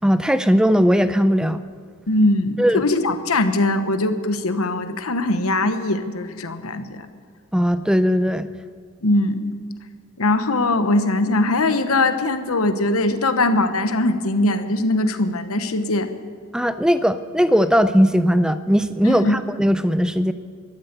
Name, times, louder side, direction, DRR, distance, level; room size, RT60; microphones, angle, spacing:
voice 1, 0.0-1.6 2.6-2.8 7.5-8.5 16.5-20.3, equal, 5° right, 11 dB, 0.5 m, -18 dB
voice 2, 2.1-7.1 9.0-9.5 10.2-16.1 19.0-19.4, left 2 dB, 80° left, 9 dB, 1.1 m, -21 dB
13.0 x 12.5 x 6.7 m, 2.1 s
head